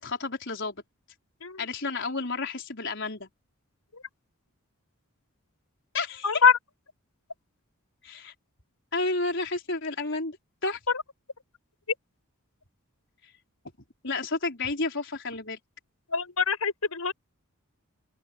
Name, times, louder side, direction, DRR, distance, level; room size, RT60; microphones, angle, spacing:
voice 1, 0.0-0.8 1.6-3.3 5.9-6.4 8.0-8.3 8.9-10.4 10.6-10.8 14.0-15.6, left 3 dB, 55° left, 5.2 m, -31 dB
voice 2, 6.2-6.6 16.1-17.1, left 6 dB, 85° left, 6.1 m, -23 dB
open air
head